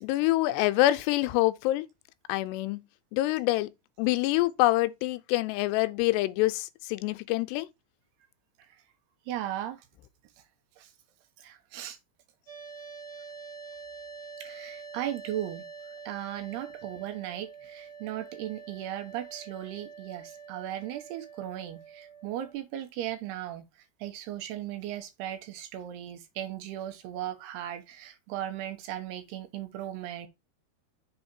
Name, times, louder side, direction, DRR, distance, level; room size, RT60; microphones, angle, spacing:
voice 1, 0.0-1.9 2.3-2.8 3.1-3.7 4.0-7.7, left 17 dB, 90° left, 2.7 m, -26 dB
voice 2, 9.3-9.8 10.8-10.9 11.4-12.0 14.4-15.7 16.1-23.6 24.0-30.3, right 12 dB, 80° right, 3.0 m, -37 dB
sound 1, 12.5-22.5, right 5 dB, 35° right, 2.5 m, -46 dB
7.0 x 3.8 x 4.3 m
omnidirectional pair, 4.7 m